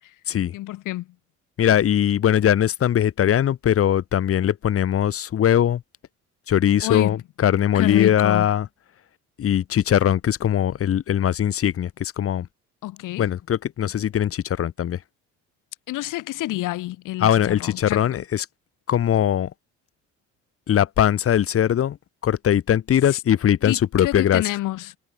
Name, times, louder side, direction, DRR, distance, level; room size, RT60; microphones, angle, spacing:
voice 1, 0.5-1.2 6.8-7.2 7.7-8.5 12.8-13.3 15.9-18.2 23.1-23.2 23.6-25.0, left 17 dB, 80° left, 6.9 m, -28 dB
voice 2, 1.6-5.8 6.5-8.7 9.4-12.5 13.2-15.0 17.2-18.5 18.9-19.5 20.7-22.0 22.2-24.4, left 10 dB, 45° left, 2.6 m, -20 dB
cardioid pair, 135°, 31 cm